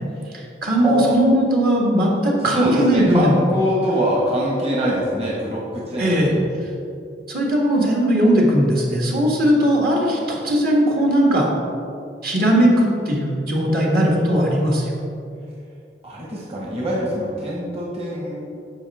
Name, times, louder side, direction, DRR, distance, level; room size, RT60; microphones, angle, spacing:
voice 1, 0.3-3.4 6.0-6.3 7.3-11.5 12.2-14.9, equal, 60° right, -2 dB, 1.8 m, -18 dB
voice 2, 0.8-1.2 2.5-6.3 16.0-18.4, equal, 35° right, -5 dB, 1.5 m, -23 dB
14.0 x 5.2 x 3.6 m, 2.5 s
head